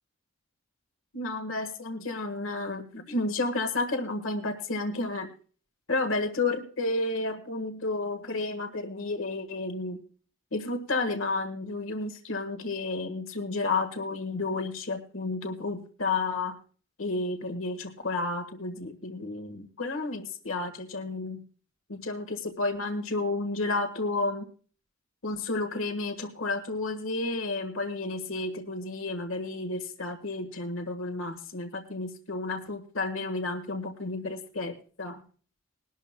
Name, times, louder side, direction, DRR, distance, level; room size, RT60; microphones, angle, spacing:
voice 1, 1.1-5.3 5.9-10.0 10.5-16.6 17.0-21.4 21.9-24.5 25.2-35.2, left 2 dB, 75° left, 7 dB, 1.5 m, -31 dB
21.0 x 12.0 x 2.2 m, 0.41 s
head